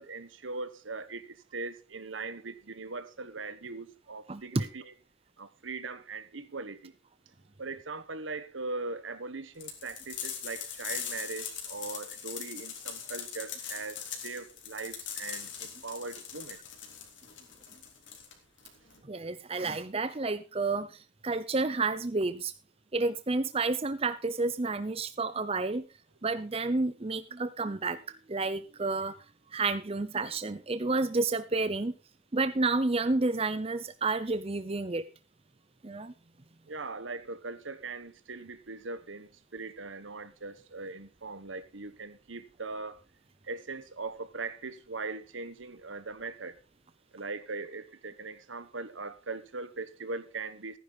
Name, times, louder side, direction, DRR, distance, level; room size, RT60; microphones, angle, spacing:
voice 1, 0.0-4.9 5.4-6.9 7.6-16.6 36.7-43.0 43.5-46.6 47.1-50.8, right 3 dB, 75° right, 1.2 m, -40 dB
voice 2, 4.3-4.6 19.1-22.5 22.9-25.8 26.2-29.2 29.5-31.9 32.3-35.0 35.8-36.1, right 3 dB, 30° right, 0.7 m, -30 dB
sound 1, 9.6-19.0, left 8 dB, 70° left, 3.6 m, -41 dB
14.5 x 10.0 x 4.0 m
head